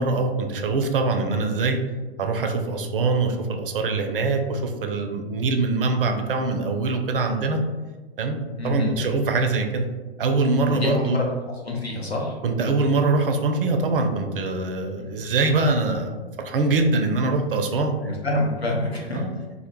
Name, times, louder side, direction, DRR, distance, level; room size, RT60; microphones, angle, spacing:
voice 1, 0.0-1.8 2.2-7.6 8.2-8.4 8.6-9.8 10.2-11.2 12.4-17.9 19.1-19.3, right 3 dB, 60° right, 5 dB, 0.4 m, -23 dB
voice 2, 8.6-8.9 10.6-11.3 11.6-12.4 15.0-15.1 17.7-19.4, left 1 dB, 90° left, -1 dB, 0.6 m, -27 dB
2.1 x 2.0 x 2.9 m, 1.3 s
figure-of-eight pair, 105°, 31 cm